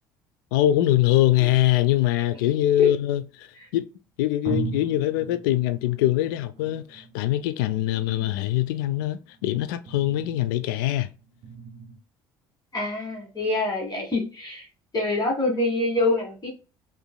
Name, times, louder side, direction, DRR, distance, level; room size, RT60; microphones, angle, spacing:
voice 1, 0.5-3.5 3.7-3.9 4.2-11.1, left 13 dB, 70° left, 0.4 m, -23 dB
sound 1, 2.4-3.4 4.0-4.1 4.4-12.0, right 5 dB, 55° right, 0.8 m, -40 dB
voice 2, 12.7-14.7 14.9-16.5, left 2 dB, 35° left, 1.7 m, -26 dB
5.2 x 2.6 x 2.2 m
hypercardioid pair, 60°, 12 cm